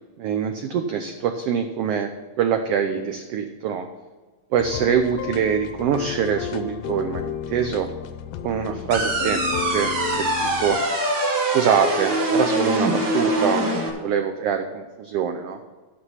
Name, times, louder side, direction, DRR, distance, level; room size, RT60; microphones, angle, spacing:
voice 1, 0.2-2.1 2.4-3.9 4.5-7.9 8.4-10.8 11.5-15.6, right 7 dB, 80° right, 6 dB, 1.4 m, -24 dB
sound 1, 4.6-10.8, left 10 dB, 75° left, 1.6 m, -33 dB
sound 2, 8.9-13.9, right 2 dB, 45° right, 1.7 m, -23 dB
11.5 x 6.5 x 5.6 m, 1.4 s
omnidirectional pair, 3.4 m